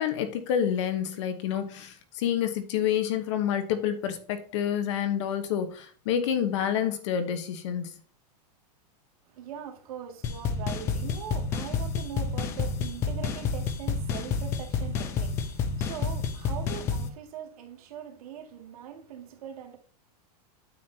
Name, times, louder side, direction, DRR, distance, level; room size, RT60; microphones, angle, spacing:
voice 1, 0.0-7.9, left 9 dB, 45° left, 1.1 m, -28 dB
voice 2, 9.3-19.8, right 9 dB, 60° right, 2.3 m, -41 dB
sound 1, 10.2-17.1, left 5 dB, 15° left, 0.3 m, -29 dB
9.2 x 8.5 x 2.8 m
supercardioid pair, 175°, 21 cm